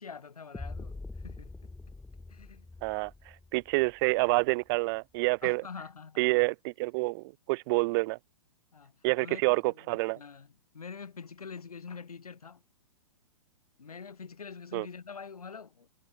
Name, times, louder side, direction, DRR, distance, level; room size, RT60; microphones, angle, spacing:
voice 1, 0.0-1.5 2.3-2.7 5.4-6.2 8.7-8.9 9.2-9.4 9.7-9.8 10.1-10.5 10.7-12.6 13.8-15.9, left 5 dB, 90° left, 4.7 m, -45 dB
sound 1, 0.5-4.5, left 3 dB, 5° left, 1.0 m, -44 dB
voice 2, 2.8-3.1 3.5-5.6 6.2-8.2 9.0-10.2 14.7-14.9, right 26 dB, 40° right, 1.1 m, -28 dB
hypercardioid pair, 130°, 18 cm